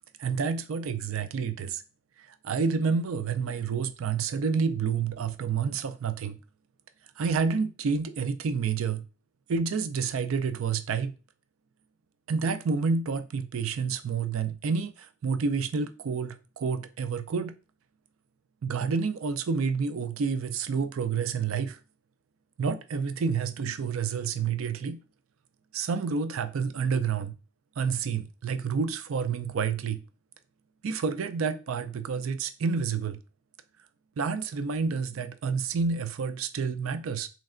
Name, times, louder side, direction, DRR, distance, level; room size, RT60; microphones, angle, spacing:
voice 1, 0.2-1.8 2.2-6.4 7.2-9.1 9.5-11.1 12.3-17.5 18.6-21.8 22.6-25.0 25.7-27.4 27.8-30.0 30.8-33.2 34.2-37.3, right 5 dB, 85° right, 0.4 m, -29 dB
3.3 x 3.2 x 3.7 m
head